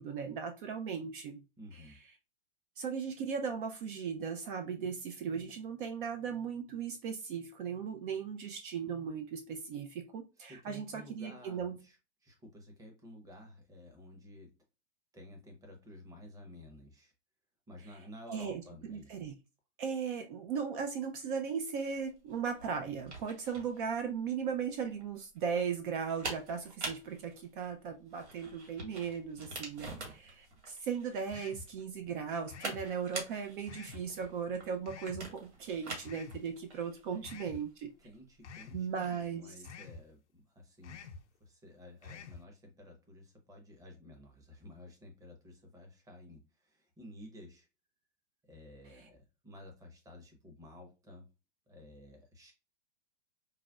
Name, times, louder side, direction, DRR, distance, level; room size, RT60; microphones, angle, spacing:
voice 1, 0.0-1.4 2.8-11.8 18.3-18.6 18.9-19.3 19.8-37.9 38.7-39.5 48.8-49.0, right 6 dB, 50° right, 0.6 m, -37 dB
voice 2, 1.6-2.0 10.4-14.5 15.1-17.1 17.7-19.2 37.1-37.2 38.0-41.0 41.4-47.7 48.4-51.3 51.7-52.5, left 1 dB, 10° right, 0.8 m, -53 dB
sound 1, 21.9-39.3, right 2 dB, 80° right, 1.7 m, -46 dB
sound 2, 31.3-31.7 32.5-32.9 33.7-34.0 34.9-35.2 36.0-36.4 37.2-37.6 38.4-38.8 39.6-40.0 40.8-41.2 42.0-42.4, left 5 dB, 90° left, 0.7 m, -48 dB
4.8 x 2.1 x 2.3 m
hypercardioid pair, 120°, 34 cm